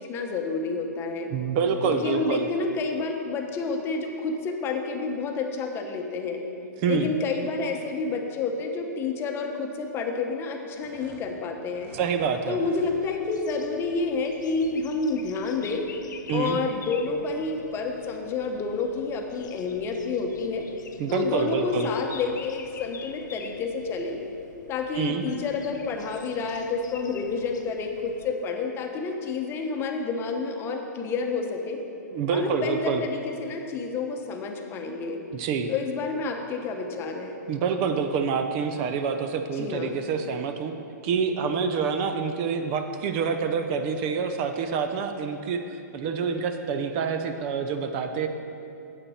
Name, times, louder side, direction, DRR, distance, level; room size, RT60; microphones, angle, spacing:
voice 1, 0.0-1.3 1.8-6.4 6.9-11.9 12.5-15.8 16.3-20.7 21.1-24.2 24.7-31.8 32.3-35.2 35.7-37.4 39.5-40.0, left 4 dB, 25° left, 3 dB, 0.9 m, -29 dB
voice 2, 1.3-2.5 6.8-7.1 11.9-12.6 16.3-16.6 21.0-21.9 24.9-25.2 32.1-33.0 35.3-35.7 37.5-40.7 41.0-45.6 45.9-48.3, right 6 dB, 40° right, 7 dB, 0.6 m, -27 dB
sound 1, 10.8-12.1 12.5-12.9, right 2 dB, 20° right, 2.4 m, -50 dB
sound 2, 13.0-28.3, left 6 dB, 80° left, 0.5 m, -46 dB
sound 3, 25.3-29.0, left 4 dB, 65° left, 1.0 m, -46 dB
8.7 x 8.4 x 4.2 m, 2.7 s
hypercardioid pair, 130°, 10 cm